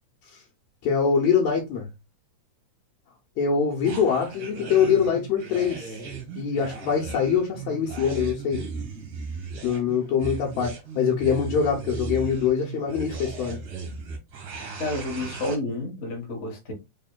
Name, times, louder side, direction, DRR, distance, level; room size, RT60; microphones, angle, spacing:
voice 1, 0.8-1.9 3.4-6.0 6.3-8.6 9.6-13.6, left 6 dB, 75° left, 2.0 m, -24 dB
sound 1, 3.8-15.6, right 4 dB, 60° right, 1.6 m, -36 dB
voice 2, 14.8-16.7, left 1 dB, 55° left, 0.7 m, -30 dB
4.3 x 3.6 x 2.2 m
omnidirectional pair, 3.5 m